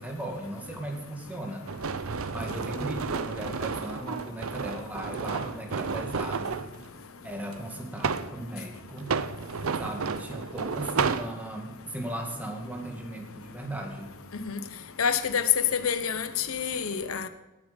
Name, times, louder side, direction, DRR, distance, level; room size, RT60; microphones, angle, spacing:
voice 1, 0.0-1.7 2.3-6.6 7.2-9.1 9.8-14.1, right 1 dB, 10° right, 1 dB, 2.2 m, -37 dB
sound 1, 1.7-6.7 7.5-8.4 9.0-11.3, right 5 dB, 85° right, 0.7 m, -31 dB
voice 2, 15.0-15.4 15.7-17.3, left 6 dB, 90° left, 10 dB, 1.0 m, -28 dB
18.0 x 8.5 x 5.3 m, 1.1 s
head